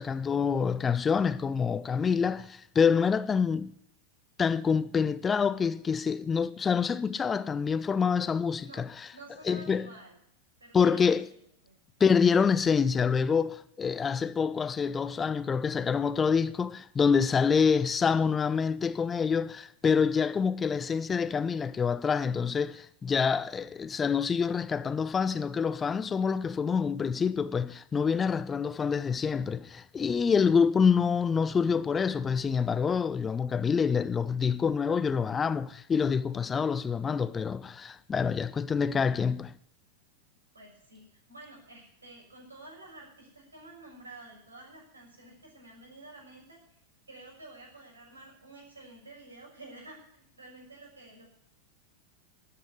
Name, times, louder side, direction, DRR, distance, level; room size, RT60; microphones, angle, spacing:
voice 1, 0.0-3.7 4.4-9.1 9.4-9.9 10.7-11.3 12.0-39.5, left 6 dB, 20° left, 0.5 m, -26 dB
voice 2, 8.6-10.2 10.6-11.2 11.6-11.7 40.5-46.8 47.1-51.3, right 2 dB, 75° right, 6.5 m, -50 dB
13.0 x 8.3 x 9.6 m
figure-of-eight pair, 90°, 0 cm